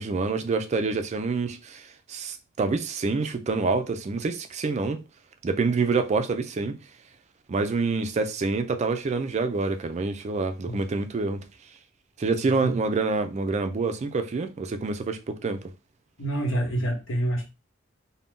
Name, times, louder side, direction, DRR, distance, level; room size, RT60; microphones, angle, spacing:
voice 1, 0.0-5.0 5.4-6.8 7.5-11.4 12.2-15.7, right 4 dB, 35° right, 0.3 m, -27 dB
voice 2, 12.4-12.8 16.2-17.5, right 1 dB, 75° left, 1.1 m, -27 dB
2.6 x 2.1 x 3.5 m
head